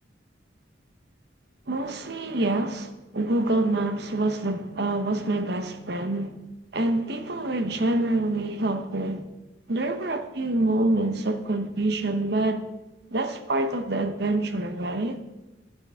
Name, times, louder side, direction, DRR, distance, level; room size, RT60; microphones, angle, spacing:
voice 1, 1.7-6.4 6.7-9.2 9.7-12.6 13.1-15.2, right 2 dB, 60° right, 0.9 m, -26 dB
12.0 x 11.5 x 3.6 m
head